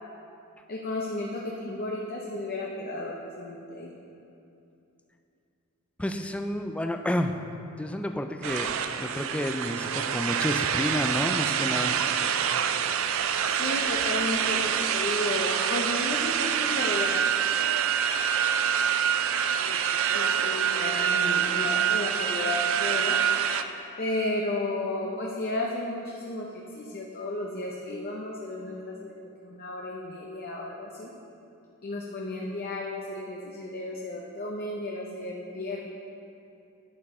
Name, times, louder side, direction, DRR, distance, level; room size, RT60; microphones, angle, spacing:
voice 1, 0.7-3.9 13.5-17.2 20.1-23.2 24.0-29.1 29.4-31.1 31.8-35.9, left 2 dB, 45° left, -2 dB, 0.7 m, -33 dB
voice 2, 6.0-7.3 7.8-12.0, left 1 dB, 5° left, 6 dB, 0.4 m, -30 dB
sound 1, 8.4-23.6, right 8 dB, 65° right, 0.4 m, -26 dB
11.0 x 6.9 x 3.7 m, 2.7 s
head